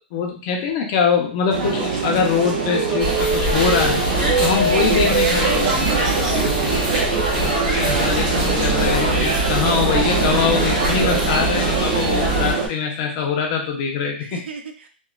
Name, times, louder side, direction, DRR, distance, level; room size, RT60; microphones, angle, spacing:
voice 1, 0.0-4.0 4.4-5.6 7.3-14.4, left 6 dB, 25° left, 1 dB, 0.4 m, -23 dB
sound 1, 1.5-12.7, right 4 dB, 30° right, 0.5 m, -23 dB
sound 2, 3.0-12.5, right 1 dB, 50° right, 1.2 m, -23 dB
sound 3, 3.3-11.4, right 1 dB, 65° left, 0.8 m, -37 dB
voice 2, 4.5-6.1 14.2-14.9, right 5 dB, 80° right, 5 dB, 0.5 m, -31 dB
2.9 x 2.0 x 2.3 m, 0.38 s
hypercardioid pair, 180°, 6 cm